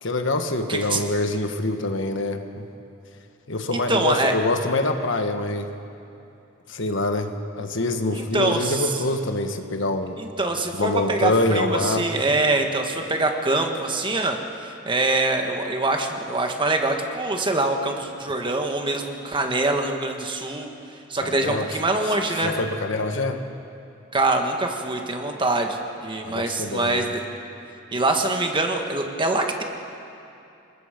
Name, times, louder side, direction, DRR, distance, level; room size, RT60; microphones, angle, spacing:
voice 1, 0.0-2.7 3.5-5.7 6.7-10.2 10.8-12.2 21.2-21.7 22.4-23.4 26.2-27.1, left 2 dB, 65° left, 6 dB, 1.4 m, -25 dB
voice 2, 0.7-1.0 3.7-4.3 8.1-8.9 10.2-14.4 14.6-20.7 21.1-22.5 24.1-27.2 27.9-29.6, right 2 dB, 25° right, 3 dB, 1.6 m, -24 dB
29.5 x 20.0 x 5.2 m, 2.7 s
head